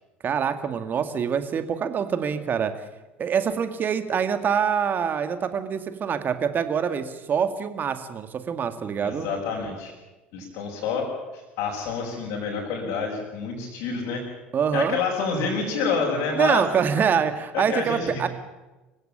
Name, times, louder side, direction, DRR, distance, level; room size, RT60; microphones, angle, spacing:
voice 1, 0.2-2.7 3.2-9.3 14.5-15.0 16.4-18.3, right 7 dB, 35° right, 10 dB, 2.2 m, -25 dB
voice 2, 9.0-9.9 10.3-14.2 14.7-16.6 17.5-18.3, left 5 dB, 55° left, -3 dB, 6.3 m, -28 dB
26.0 x 16.5 x 8.9 m, 1.1 s
figure-of-eight pair, 65°, 6 cm